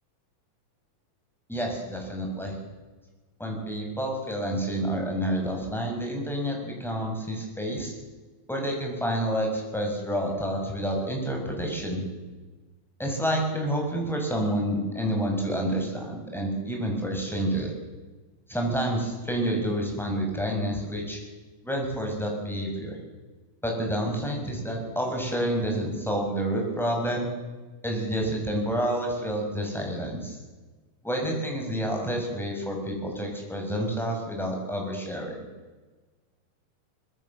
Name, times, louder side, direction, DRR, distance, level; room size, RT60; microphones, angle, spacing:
voice 1, 1.5-2.6 3.4-7.9 8.5-12.0 13.0-17.7 18.5-21.2 21.6-23.0 23.6-27.3 27.8-30.4 31.0-35.4, right 1 dB, ahead, 0 dB, 6.6 m, -29 dB
25.0 x 21.0 x 7.5 m, 1.3 s
omnidirectional pair, 3.5 m